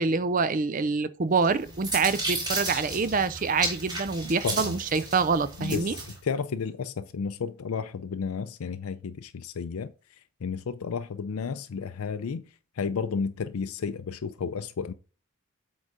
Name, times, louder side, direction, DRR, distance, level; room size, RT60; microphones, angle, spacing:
voice 1, 0.0-6.0, right 4 dB, 35° right, 0.4 m, -26 dB
sound 1, 1.4-6.2, right 2 dB, 20° right, 4.0 m, -34 dB
voice 2, 4.4-4.8 5.6-9.9 10.4-12.4 12.8-14.9, left 5 dB, 80° left, 0.5 m, -32 dB
8.1 x 3.8 x 4.8 m
head